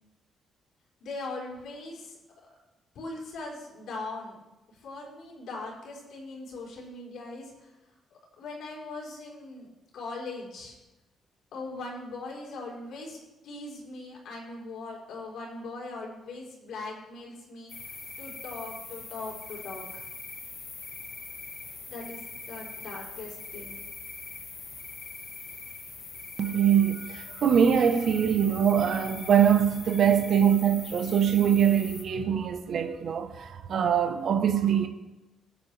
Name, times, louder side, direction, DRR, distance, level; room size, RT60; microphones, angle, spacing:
voice 1, 1.0-2.2 2.9-4.4 4.7-7.7 8.1-9.7 9.9-10.7 11.5-13.2 13.4-17.7 18.2-20.0 21.9-23.8, left 3 dB, 70° left, 4.1 m, -40 dB
sound 1, 17.7-32.0, left 4 dB, 35° left, 1.5 m, -42 dB
voice 2, 26.4-34.9, right 8 dB, 50° right, 0.9 m, -23 dB
20.5 x 8.3 x 3.3 m
cardioid pair, 155°, 0 cm